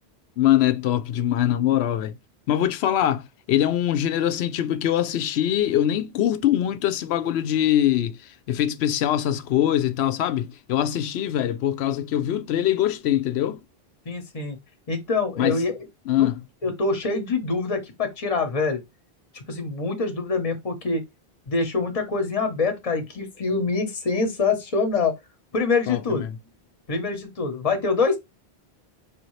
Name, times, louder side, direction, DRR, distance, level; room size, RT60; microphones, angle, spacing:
voice 1, 0.4-2.1 2.5-8.2 8.5-13.6 15.4-15.6 16.1-16.3 25.9-26.4, left 11 dB, 80° left, 0.8 m, -23 dB
voice 2, 14.1-14.6 14.9-15.8 16.2-16.3 16.6-18.8 19.3-21.0 21.5-25.2 25.5-26.2 26.9-28.2, left 4 dB, 35° left, 1.0 m, -25 dB
4.8 x 2.7 x 3.1 m
omnidirectional pair, 1.1 m